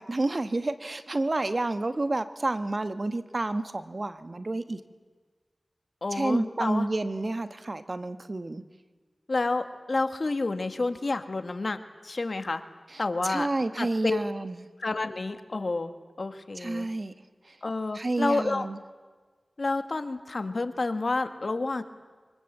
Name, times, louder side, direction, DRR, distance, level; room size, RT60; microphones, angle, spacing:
voice 1, 0.0-4.8 6.1-8.6 13.2-14.6 16.6-17.1 17.9-18.8, right 2 dB, 50° right, 10 dB, 1.2 m, -29 dB
voice 2, 6.0-6.9 9.3-11.8 12.0-12.6 13.0-13.5 13.8-14.2 14.8-15.9 16.2-16.9 17.6-18.7 19.6-21.8, left 3 dB, 60° left, 9 dB, 1.7 m, -29 dB
24.5 x 23.0 x 8.0 m, 1.4 s
wide cardioid pair, 50°, 0 cm